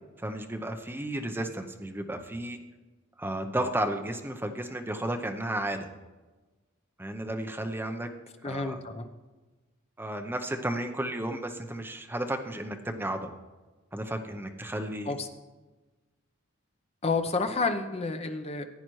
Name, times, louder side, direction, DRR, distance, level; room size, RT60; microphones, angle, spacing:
voice 1, 0.2-2.6 3.2-5.9 7.0-8.1 8.4-8.8 10.0-13.3 13.9-15.1, right 1 dB, 10° right, 4 dB, 0.7 m, -33 dB
voice 2, 8.4-9.1 15.1-15.3 17.0-18.7, left 4 dB, 30° left, 7 dB, 0.7 m, -30 dB
15.0 x 8.8 x 3.1 m, 1.2 s
head